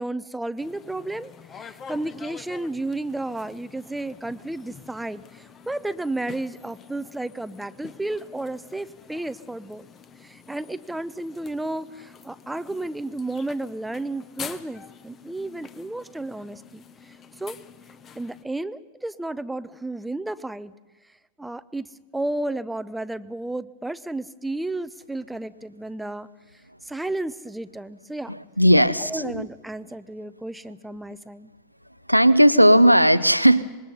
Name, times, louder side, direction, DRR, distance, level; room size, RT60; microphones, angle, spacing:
voice 1, 0.0-9.9 10.2-17.6 18.2-20.7 21.4-26.3 26.8-28.3 28.8-31.5, right 2 dB, 5° right, 14 dB, 0.7 m, -32 dB
sound 1, 0.6-18.4, left 7 dB, 25° left, 1.0 m, -46 dB
voice 2, 28.3-29.5 32.1-33.6, equal, 90° right, 15 dB, 0.7 m, -16 dB
25.0 x 20.5 x 5.6 m, 1.2 s
figure-of-eight pair, 90°, 0 cm